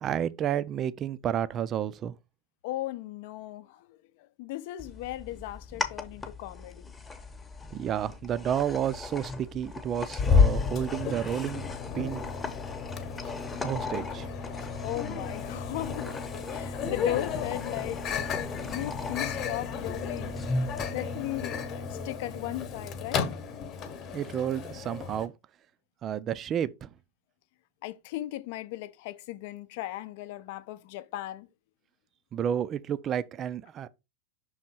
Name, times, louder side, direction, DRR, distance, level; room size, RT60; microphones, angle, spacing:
voice 1, 0.0-2.1 7.7-11.6 11.9-12.2 13.2-14.3 24.1-25.3 26.0-26.9 32.3-33.9, right 9 dB, 30° right, 0.4 m, -31 dB
voice 2, 2.6-6.9 14.8-16.1 16.5-18.3 18.6-20.3 20.9-23.3 27.8-31.5, left 15 dB, 50° left, 0.6 m, -37 dB
sound 1, 4.8-20.8, left 3 dB, 10° left, 0.9 m, -39 dB
Microwave oven, 10.2-25.3, left 5 dB, 30° left, 1.1 m, -31 dB
6.4 x 3.6 x 4.2 m
figure-of-eight pair, 90°, 0 cm